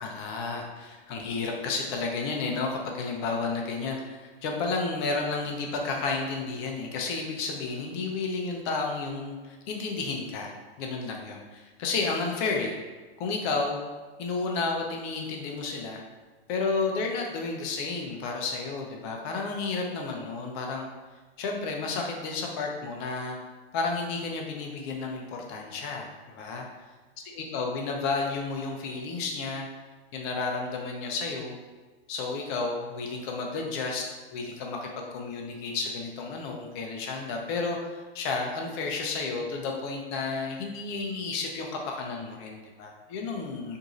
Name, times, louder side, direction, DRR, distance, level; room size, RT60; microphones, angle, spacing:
voice 1, 0.0-10.5 10.8-12.7 13.2-13.8 14.2-16.0 16.5-20.9 21.4-23.4 23.7-26.7 27.3-29.7 30.1-31.6 32.1-34.0 34.3-37.8 38.1-43.8, left 4 dB, 25° left, 1 dB, 0.4 m, -31 dB
3.0 x 2.7 x 3.7 m, 1.3 s
hypercardioid pair, 150°, 31 cm